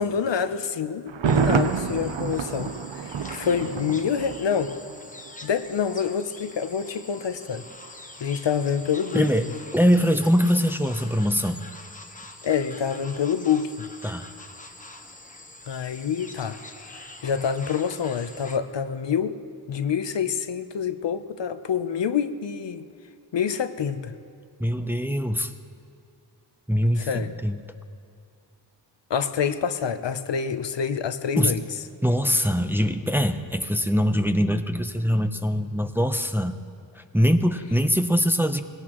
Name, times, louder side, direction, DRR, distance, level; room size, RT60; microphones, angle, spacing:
voice 1, 0.0-4.7 5.4-7.6 8.2-9.6 12.4-13.7 15.7-16.6 16.9-19.4 19.7-22.9 23.3-24.1 27.0-27.3 29.1-31.6, left 7 dB, 70° left, 11 dB, 0.7 m, -27 dB
Thunder, 1.1-5.0 5.3-5.4, right 6 dB, 85° right, 0.7 m, -27 dB
sound 1, 1.2-18.6, left 2 dB, 15° left, 1.0 m, -44 dB
voice 2, 9.1-9.5 9.7-11.6 14.0-14.3 24.6-25.5 26.7-27.6 31.4-31.6 32.0-36.5 36.9-38.6, equal, 5° right, 7 dB, 0.6 m, -23 dB
20.0 x 17.5 x 3.0 m, 2.5 s
wide cardioid pair, 70°, 45 cm